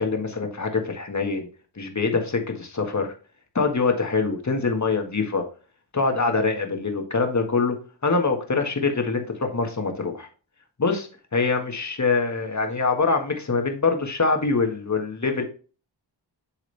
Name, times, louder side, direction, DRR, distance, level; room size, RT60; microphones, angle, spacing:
voice 1, 0.0-1.5 1.8-3.1 3.6-5.4 5.9-7.8 8.0-10.3 10.8-15.5, left 4 dB, 35° left, 4 dB, 1.7 m, -24 dB
10.0 x 3.7 x 3.4 m, 0.37 s
cardioid pair, 55°, 46 cm